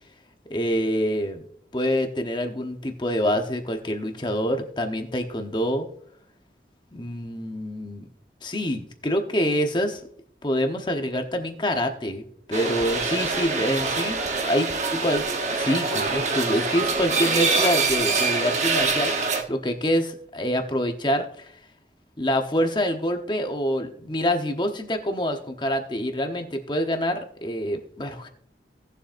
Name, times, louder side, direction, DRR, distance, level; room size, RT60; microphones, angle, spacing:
voice 1, 0.5-1.4 1.7-5.9 6.9-8.1 8.4-10.0 10.4-15.2 15.6-21.5 22.2-28.3, equal, 25° left, 5 dB, 1.0 m, -26 dB
sound 1, 12.5-19.4, right 4 dB, 40° right, 1.1 m, -25 dB
18.0 x 7.3 x 2.6 m, 0.63 s
head